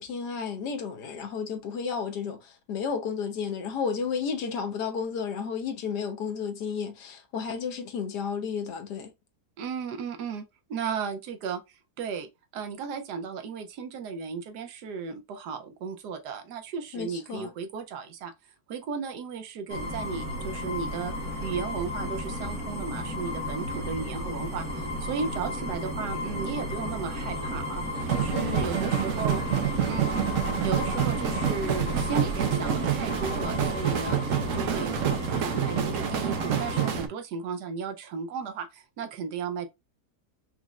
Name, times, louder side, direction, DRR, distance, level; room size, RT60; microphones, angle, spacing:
voice 1, 0.0-9.1 16.9-17.5 28.3-28.7, left 6 dB, 85° left, 1.6 m, -32 dB
voice 2, 9.6-10.4 10.7-18.3 18.7-21.1 21.4-27.8 28.1-29.4 29.9-34.2 34.5-35.0 35.3-39.7, right 5 dB, 80° right, 1.3 m, -35 dB
sound 1, 19.7-37.0, left 1 dB, 10° right, 1.1 m, -33 dB
sound 2, 27.9-37.1, right 10 dB, 60° right, 1.0 m, -28 dB
5.2 x 3.0 x 2.4 m
omnidirectional pair, 1.7 m